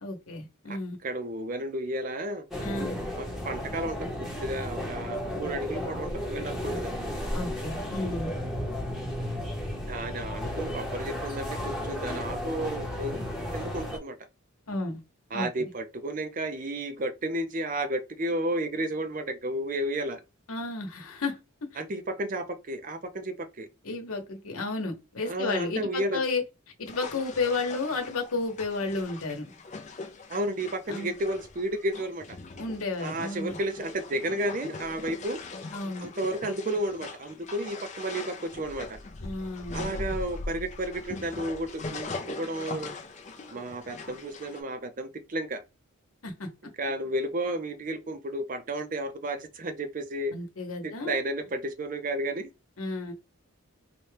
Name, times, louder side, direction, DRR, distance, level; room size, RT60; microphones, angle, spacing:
voice 1, 0.0-1.0 2.6-3.0 7.3-8.3 14.7-15.0 15.3-15.7 20.5-21.7 23.8-26.4 26.8-29.5 30.9-31.1 32.6-33.6 35.7-36.1 39.2-39.9 46.2-46.5 50.3-51.1 52.8-53.1, left 3 dB, 80° left, 1.0 m, -32 dB
voice 2, 1.0-2.5 3.2-7.0 9.8-13.2 13.5-14.2 15.3-20.2 21.8-23.7 25.3-26.2 30.3-32.4 33.0-35.4 36.0-39.0 39.7-42.9 43.5-45.6 46.8-50.3 50.8-52.5, right 1 dB, 40° right, 0.5 m, -32 dB
sound 1, 2.5-14.0, left 1 dB, ahead, 0.8 m, -33 dB
sound 2, 26.9-44.6, left 3 dB, 35° left, 0.4 m, -41 dB
4.1 x 2.2 x 3.3 m
head